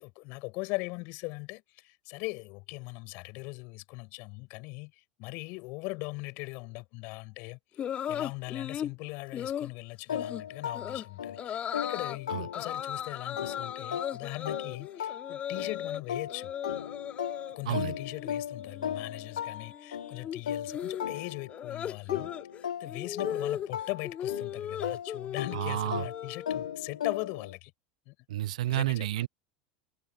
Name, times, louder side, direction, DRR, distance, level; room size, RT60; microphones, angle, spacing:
voice 1, 0.0-7.6 8.1-16.5 17.6-22.3 22.8-27.7 28.1-28.2 28.7-29.1, left 28 dB, 50° left, 5.2 m, -40 dB
sound 1, 7.8-8.9 9.3-9.7 10.1-10.4 10.7-11.0 11.4-12.2 12.5-16.0 16.3-17.6 17.9-18.3 18.6-26.8, left 9 dB, 30° left, 2.6 m, -37 dB
sound 2, 10.1-13.0 13.4-21.7 22.1-27.5, left 9 dB, 70° left, 1.8 m, -37 dB
voice 2, 17.7-18.0 25.5-26.0 28.3-29.3, right 14 dB, 60° right, 0.4 m, -30 dB
figure-of-eight pair, 80°, 4 cm